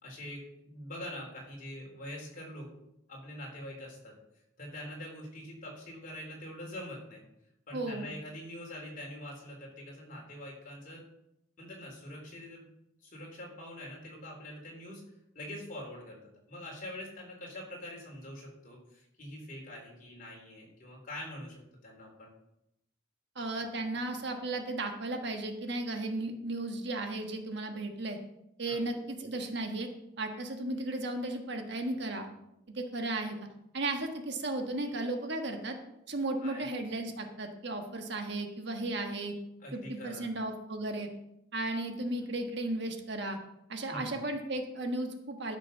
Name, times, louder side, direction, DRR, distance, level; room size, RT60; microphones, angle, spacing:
voice 1, 0.0-2.7 3.1-4.1 4.6-7.2 7.7-11.1 11.6-12.7 13.0-15.0 15.3-16.2 16.5-22.3 28.7-28.8 36.4-36.7 39.6-40.3 43.9-44.1, left 1 dB, 40° left, -1 dB, 3.9 m, -44 dB
voice 2, 7.7-8.1 23.3-28.2 28.6-29.9 30.2-32.3 32.7-33.4 33.7-35.8 36.1-39.3 39.7-41.1 41.5-43.4 43.7-45.6, right 2 dB, 55° right, 4 dB, 1.4 m, -35 dB
13.0 x 6.3 x 5.4 m, 0.83 s
head